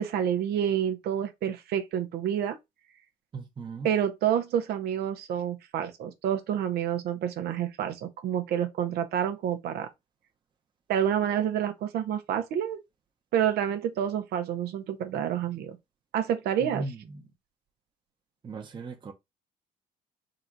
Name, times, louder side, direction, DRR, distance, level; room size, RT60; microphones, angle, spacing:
voice 1, 0.0-2.6 3.8-9.9 10.9-12.8 13.3-15.8 16.1-16.8, right 9 dB, 70° right, 0.8 m, -28 dB
voice 2, 3.3-3.9 16.6-17.2 18.4-19.1, right 3 dB, 30° right, 0.9 m, -37 dB
3.9 x 2.6 x 4.5 m
cardioid pair, 110°, 17 cm